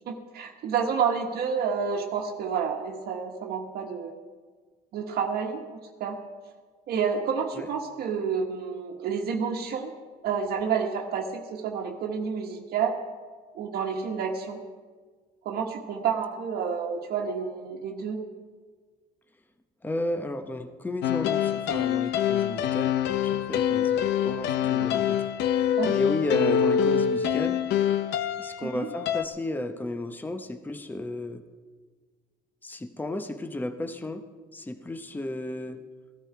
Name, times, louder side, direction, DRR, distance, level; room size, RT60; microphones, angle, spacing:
voice 1, 0.0-4.1 4.9-6.2 6.9-9.9 10.2-13.0 13.5-14.6 15.4-18.2 24.6-24.9 25.8-26.0 28.6-28.9, right 6 dB, 70° right, 2 dB, 1.4 m, -29 dB
voice 2, 19.8-25.2 25.5-27.6 28.4-31.4 32.6-34.2 34.5-35.8, left 1 dB, 10° left, 8 dB, 0.8 m, -33 dB
sound 1, 21.0-29.2, left 9 dB, 80° left, 0.6 m, -25 dB
15.5 x 12.5 x 4.7 m, 1.5 s
cardioid pair, 110°, 17 cm